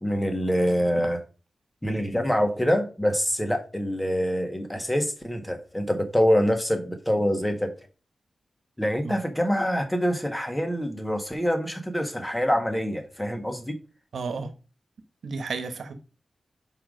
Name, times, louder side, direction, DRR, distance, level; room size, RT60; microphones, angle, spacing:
voice 1, 0.0-1.2 1.8-7.7 8.8-13.8, equal, 10° left, 1.6 m, -25 dB
voice 2, 14.1-14.5 15.2-15.9, right 4 dB, 90° right, 1.1 m, -32 dB
5.7 x 4.8 x 5.1 m
wide cardioid pair, 95°, 0 cm